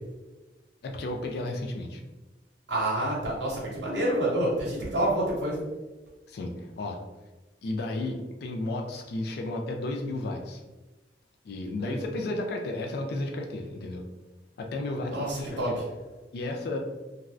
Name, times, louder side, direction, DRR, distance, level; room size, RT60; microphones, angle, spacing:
voice 1, 0.8-2.0 6.3-7.0 7.6-10.6 11.4-14.0 14.6-15.8 16.3-16.8, left 2 dB, 60° left, 2 dB, 0.4 m, -33 dB
voice 2, 2.7-5.6 11.8-12.0 15.1-15.7, right 1 dB, 75° right, -5 dB, 0.9 m, -28 dB
2.5 x 2.3 x 3.1 m, 1.1 s
head